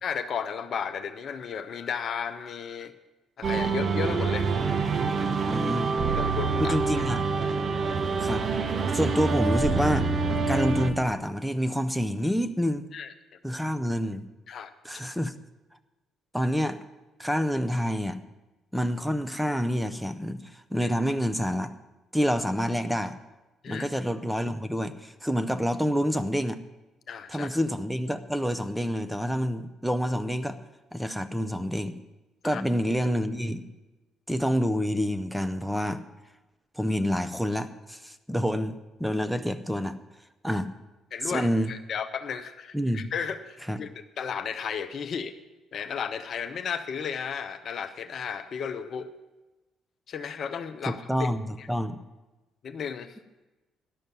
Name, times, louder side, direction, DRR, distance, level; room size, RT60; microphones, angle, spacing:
voice 1, 0.0-2.9 3.4-4.5 6.1-6.8 12.9-13.1 14.5-14.7 23.6-23.9 27.1-27.5 32.4-32.6 40.5-40.6 41.1-43.9 44.2-45.3 45.7-49.1 50.1-51.3 51.6-51.7 52.6-53.2, left 7 dB, 50° left, 9 dB, 0.6 m, -34 dB
sound 1, 3.4-10.9, right 4 dB, 45° right, 0.8 m, -26 dB
voice 2, 5.5-5.9 6.6-7.3 8.2-8.4 8.9-10.1 10.5-12.8 13.4-14.3 14.8-15.3 16.3-16.8 17.2-18.2 18.7-21.7 22.1-23.1 23.7-26.6 27.3-30.6 30.9-32.0 32.4-33.6 34.3-36.0 36.7-40.0 40.4-40.7 41.2-41.7 42.7-43.1 43.7-43.8 50.8-52.0, equal, ahead, 9 dB, 0.7 m, -27 dB
10.5 x 6.6 x 8.9 m, 1.1 s
figure-of-eight pair, 45°, 0 cm